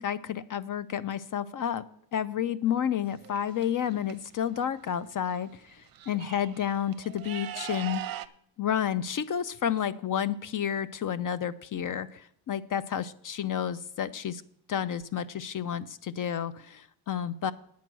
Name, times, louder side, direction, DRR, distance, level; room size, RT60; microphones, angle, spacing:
voice 1, 0.0-1.9 2.1-8.2 8.6-14.4 14.7-17.5, left 9 dB, 55° left, 15 dB, 0.4 m, -31 dB
sound 1, 3.0-4.1 5.3-5.4 5.7-8.3, right 13 dB, 60° right, 0.6 m, -40 dB
9.1 x 8.3 x 6.0 m, 0.72 s
wide cardioid pair, 175°, 40 cm